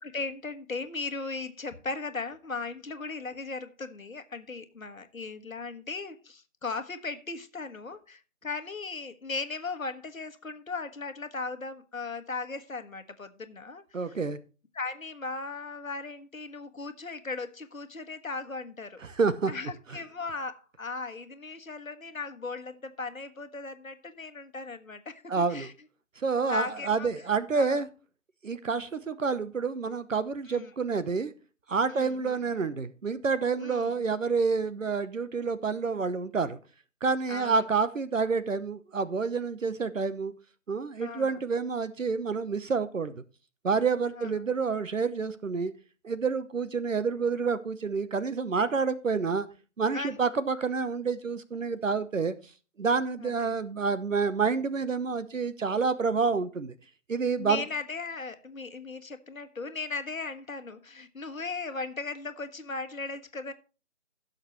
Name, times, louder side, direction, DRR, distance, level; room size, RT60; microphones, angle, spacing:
voice 1, 0.0-14.2 14.7-19.0 19.5-25.7 26.4-27.1 27.5-27.8 30.5-30.7 31.9-32.4 33.6-34.0 37.3-37.6 41.0-41.4 44.1-44.5 49.9-50.2 53.2-53.6 57.4-63.5, left 3 dB, 85° left, 1.4 m, -37 dB
voice 2, 13.9-14.4 19.0-19.5 25.3-25.7 26.2-27.9 28.4-31.3 31.7-36.6 37.0-40.3 40.7-43.1 43.6-45.7 46.0-49.5 49.8-52.3 52.8-56.7 57.1-57.6, right 5 dB, 75° right, 1.0 m, -28 dB
17.0 x 6.6 x 3.1 m
figure-of-eight pair, 160°, 40 cm